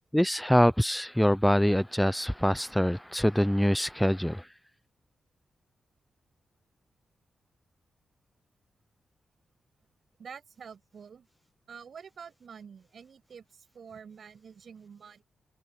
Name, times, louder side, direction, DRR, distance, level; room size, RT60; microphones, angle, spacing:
voice 1, 0.1-4.4, equal, 5° left, 0.5 m, -24 dB
voice 2, 10.2-11.3 11.7-15.2, right 6 dB, 65° right, 8.0 m, -48 dB
cardioid pair, 75°, 0 cm